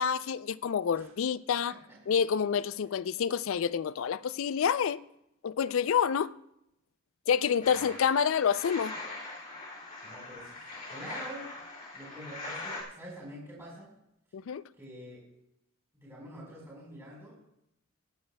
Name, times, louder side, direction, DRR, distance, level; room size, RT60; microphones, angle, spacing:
voice 1, 0.0-1.7 2.1-5.0 5.4-6.3 7.3-9.0 14.3-14.6, left 7 dB, 70° left, 0.4 m, -28 dB
voice 2, 1.7-2.0 7.7-7.9 10.0-11.5 11.9-13.9 14.8-15.3 15.9-17.4, right 1 dB, 15° right, 4.1 m, -46 dB
sound 1, 7.6-12.8, left 2 dB, 40° left, 2.3 m, -42 dB
22.0 x 8.8 x 2.2 m
head